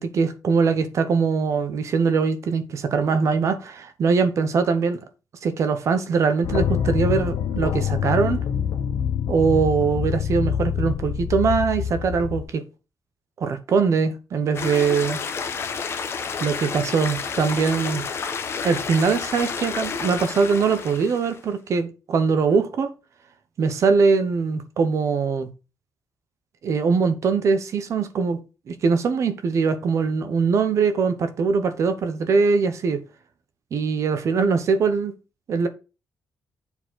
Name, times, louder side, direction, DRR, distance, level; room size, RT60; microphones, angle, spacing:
voice 1, 0.0-5.0 5.4-8.4 9.3-12.6 13.4-15.2 16.4-18.0 18.6-22.9 23.6-25.5 26.6-28.4 28.7-33.0 33.7-35.1 35.5-35.7, right 5 dB, 45° right, 0.8 m, -22 dB
sound 1, 6.4-12.4, left 8 dB, 70° left, 0.9 m, -25 dB
sound 2, 14.5-21.4, left 5 dB, 35° left, 0.9 m, -30 dB
7.0 x 4.4 x 4.0 m
cardioid pair, 165°, 7 cm